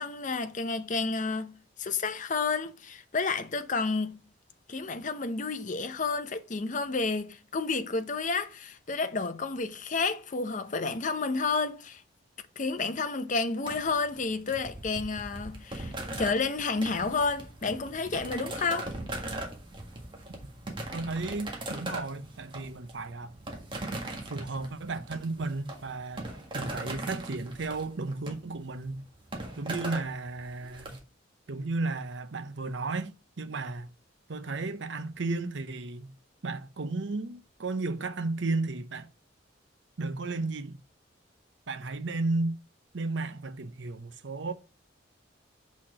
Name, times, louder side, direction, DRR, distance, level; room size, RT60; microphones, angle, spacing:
voice 1, 0.0-4.2 4.7-12.0 12.6-15.9 16.2-18.9, left 4 dB, 40° left, 0.7 m, -30 dB
sound 1, 13.7-31.0, right 2 dB, 25° right, 1.5 m, -40 dB
voice 2, 20.9-23.4 24.3-29.0 29.6-31.0 31.5-33.9 34.3-36.1 36.4-39.1 40.0-40.8 41.7-42.6 42.9-44.5, right 3 dB, 70° right, 0.7 m, -34 dB
5.9 x 4.2 x 6.3 m
head